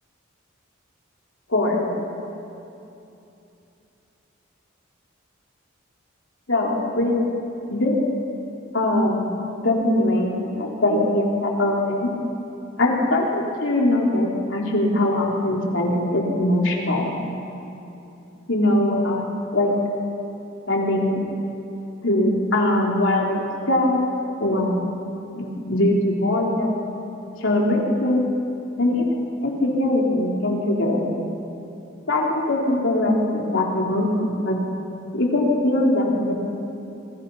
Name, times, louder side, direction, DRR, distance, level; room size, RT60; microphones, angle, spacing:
voice 1, 1.5-1.9 6.5-7.2 7.7-8.0 8.7-9.4 9.6-12.1 12.8-17.1 18.5-19.2 19.5-19.7 20.7-21.2 22.0-24.1 24.4-24.8 25.3-26.8 27.4-28.3 28.8-31.0 32.1-34.6 35.1-36.3, left 1 dB, 65° left, -2 dB, 4.1 m, -21 dB
27.0 x 23.5 x 5.8 m, 2.9 s
head